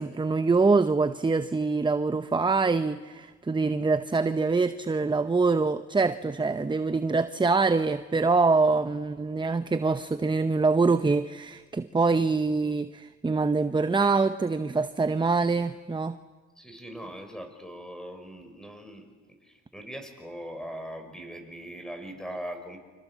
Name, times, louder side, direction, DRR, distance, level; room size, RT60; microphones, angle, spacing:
voice 1, 0.0-16.2, right 4 dB, 15° right, 0.8 m, -24 dB
voice 2, 16.6-19.1 19.4-22.8, equal, ahead, 5.6 m, -40 dB
28.5 x 26.5 x 7.4 m
cardioid pair, 90°, 30 cm